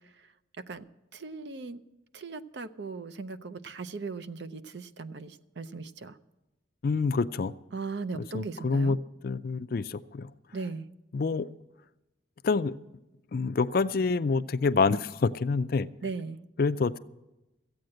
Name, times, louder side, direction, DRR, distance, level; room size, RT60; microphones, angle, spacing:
voice 1, 1.1-1.8 2.1-6.2 7.7-9.0 10.5-10.9 16.0-16.4, right 4 dB, 60° right, 12 dB, 0.6 m, -38 dB
voice 2, 6.8-7.5 8.1-9.0 9.2-10.3 11.1-11.5 12.4-12.8 13.3-15.9 16.6-17.0, left 4 dB, 50° left, 15 dB, 0.4 m, -27 dB
14.5 x 8.6 x 7.7 m, 1.0 s
head